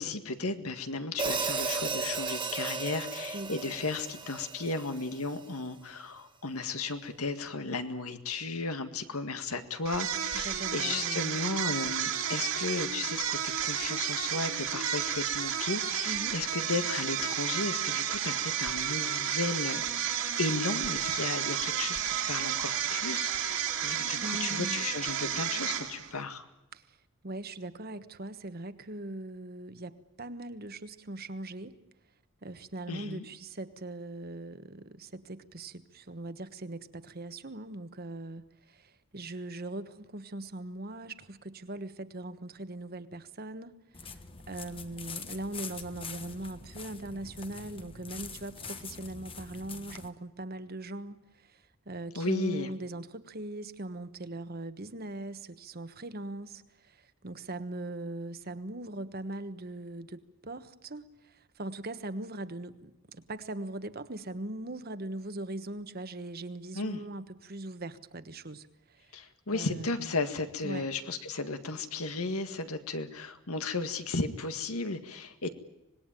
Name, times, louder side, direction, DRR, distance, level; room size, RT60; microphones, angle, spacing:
voice 1, 0.0-26.5 32.9-33.2 52.2-52.7 66.7-67.0 69.1-75.5, left 3 dB, 85° left, 9 dB, 1.9 m, -35 dB
Hi-hat, 1.2-5.4, right 4 dB, 20° right, 1.9 m, -34 dB
sound 1, 9.8-26.2, right 9 dB, 70° right, 2.6 m, -32 dB
voice 2, 10.3-11.4 16.0-16.4 24.2-24.8 26.7-27.0 27.2-31.8 32.4-44.1 44.5-69.2 69.5-70.1 70.6-70.9, right 2 dB, 45° right, 11 dB, 1.3 m, -40 dB
sound 2, 43.9-50.1, left 5 dB, 25° left, 1.3 m, -44 dB
25.5 x 20.0 x 9.1 m, 0.91 s
head